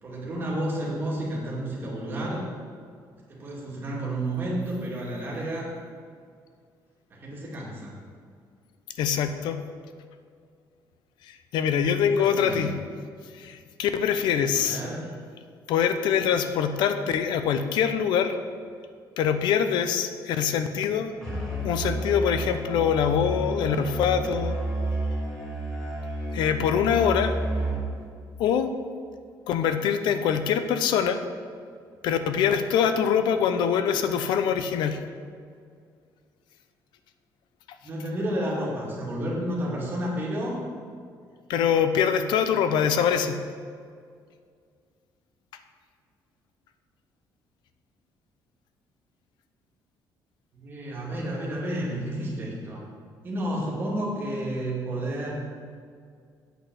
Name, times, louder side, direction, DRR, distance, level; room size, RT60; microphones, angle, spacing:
voice 1, 0.0-2.4 3.3-5.7 7.1-7.9 12.2-12.7 14.6-15.1 37.8-40.6 50.5-52.8 53.2-55.3, right 1 dB, 30° right, -4 dB, 2.5 m, -31 dB
voice 2, 9.0-9.6 11.2-12.7 13.3-14.8 15.7-18.4 19.2-21.1 21.6-24.6 26.3-27.3 28.4-28.7 29.5-31.2 32.0-35.0 41.5-43.4, left 8 dB, 90° left, 9 dB, 0.7 m, -24 dB
Musical instrument, 21.2-28.0, right 1 dB, 5° left, 2.3 m, -31 dB
8.3 x 6.2 x 7.8 m, 2.1 s
cardioid pair, 170°, 8 cm